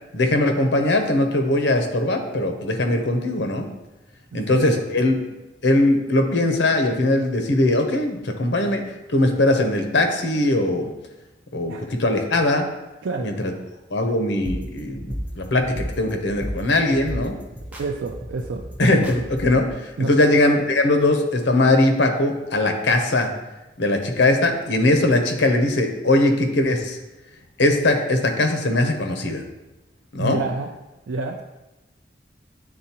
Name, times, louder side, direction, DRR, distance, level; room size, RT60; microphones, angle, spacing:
voice 1, 0.1-3.7 4.3-5.2 5.6-8.8 9.1-10.9 11.5-12.7 13.2-13.5 13.9-17.3 18.8-23.3 23.8-27.0 27.6-29.4 30.1-30.4, left 2 dB, 75° left, 5 dB, 0.8 m, -20 dB
voice 2, 4.3-4.7 11.7-11.9 13.0-13.3 13.6-13.7 17.8-18.6 20.0-20.1 30.2-30.7 31.1-31.4, right 3 dB, 80° right, 1 dB, 0.4 m, -28 dB
sound 1, 14.4-19.7, equal, 10° right, 0.7 m, -34 dB
8.7 x 3.7 x 2.9 m, 1.0 s
head